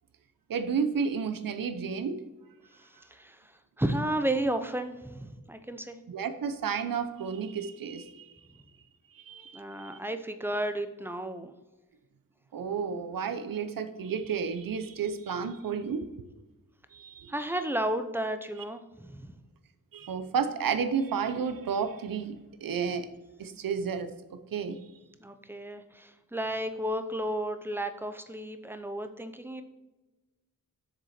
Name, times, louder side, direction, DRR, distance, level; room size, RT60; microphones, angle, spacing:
voice 1, 0.5-2.2 6.1-8.3 9.1-10.0 12.5-16.3 16.9-17.3 19.9-23.1 23.4-24.8, right 6 dB, 85° right, 10 dB, 0.8 m, -32 dB
voice 2, 2.7-6.0 9.5-11.5 17.3-19.4 25.2-29.6, right 1 dB, 5° right, 8 dB, 0.6 m, -33 dB
7.5 x 6.8 x 4.2 m, 1.1 s
wide cardioid pair, 165°, 33 cm